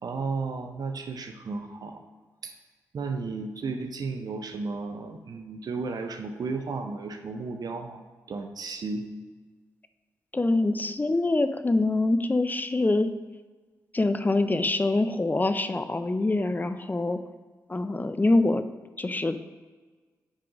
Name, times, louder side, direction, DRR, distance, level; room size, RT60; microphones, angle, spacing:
voice 1, 0.0-2.0 2.4-2.5 2.9-9.1, right 4 dB, 60° right, 5 dB, 0.7 m, -34 dB
voice 2, 10.3-13.1 13.9-17.2 17.7-18.6 19.0-19.4, left 2 dB, 25° left, 10 dB, 0.6 m, -25 dB
7.6 x 3.8 x 4.9 m, 1.4 s
supercardioid pair, 45°, 7 cm